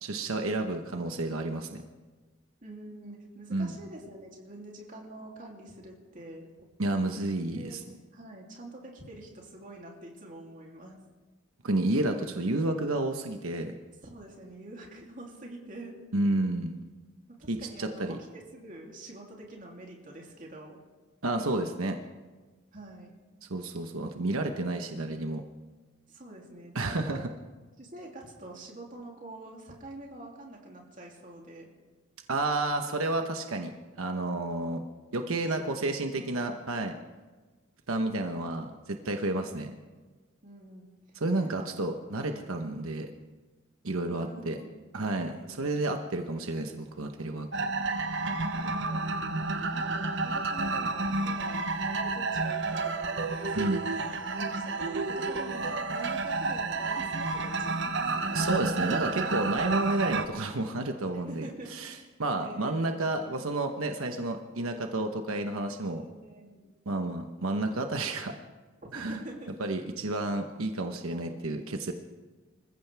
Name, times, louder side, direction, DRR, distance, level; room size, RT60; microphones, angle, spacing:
voice 1, 0.0-1.8 3.5-3.7 6.8-7.8 11.6-13.7 16.1-16.8 17.5-18.2 21.2-22.0 23.5-25.4 26.7-27.3 32.3-33.7 34.0-34.8 35.1-37.0 37.9-39.7 41.1-43.1 43.8-44.6 44.9-47.5 53.5-53.8 58.3-66.0 66.9-68.3 68.9-69.2 69.6-71.9, right 2 dB, 90° right, 5 dB, 1.1 m, -31 dB
voice 2, 2.6-6.7 7.1-7.3 7.5-7.8 8.1-11.0 14.0-15.9 17.4-20.8 22.7-23.1 26.1-27.2 27.8-31.7 35.4-35.7 36.0-36.5 39.4-39.6 40.4-40.9 41.3-41.7 42.3-42.6 44.0-45.7 47.8-49.0 49.6-53.6 53.9-54.1 54.4-58.8 61.3-61.8 62.4-62.8 65.9-66.7 68.9-69.5 71.1-71.4, right 1 dB, 40° right, -1 dB, 3.0 m, -46 dB
sound 1, 47.5-60.3, right 3 dB, 60° right, 0.9 m, -30 dB
26.0 x 15.0 x 3.5 m, 1.3 s
head